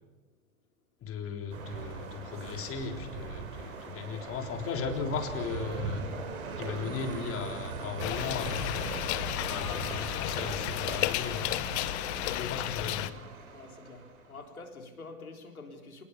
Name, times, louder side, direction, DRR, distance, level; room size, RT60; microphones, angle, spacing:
voice 1, 1.0-6.1 6.6-9.2 9.5-11.5 12.2-13.1, left 6 dB, 30° left, 3.8 m, -37 dB
sound 1, 1.5-14.4, right 4 dB, 75° right, 4.6 m, -40 dB
sound 2, 8.0-13.1, left 15 dB, 50° left, 1.2 m, -33 dB
voice 2, 13.5-16.0, left 3 dB, 85° left, 4.0 m, -47 dB
27.5 x 19.5 x 6.9 m
figure-of-eight pair, 95°, 42 cm